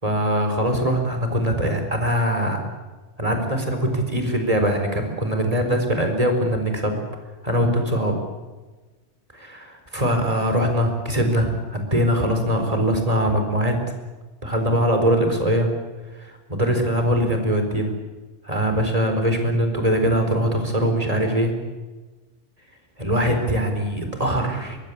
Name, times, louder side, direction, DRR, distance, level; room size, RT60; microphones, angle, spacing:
voice 1, 0.0-2.6 3.2-7.0 7.4-8.2 9.3-13.8 14.4-15.7 16.2-17.9 18.4-21.5 23.0-24.8, equal, 30° right, 5 dB, 4.4 m, -22 dB
23.5 x 21.0 x 8.6 m, 1.2 s
omnidirectional pair, 1.3 m